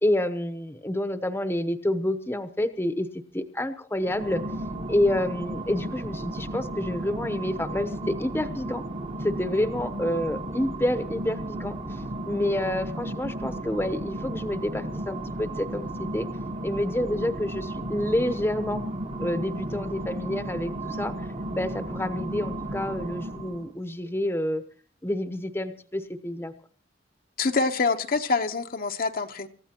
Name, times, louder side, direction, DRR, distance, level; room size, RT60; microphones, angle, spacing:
voice 1, 0.0-3.1 3.3-4.4 4.9-8.8 9.2-16.3 16.6-18.8 19.2-24.6 25.0-26.5, left 1 dB, 15° left, 10 dB, 0.9 m, -28 dB
sound 1, 4.0-23.7, right 1 dB, 35° right, 1.3 m, -34 dB
voice 2, 27.4-29.5, left 4 dB, 50° left, 6 dB, 1.0 m, -25 dB
27.5 x 14.5 x 2.9 m, 0.43 s
head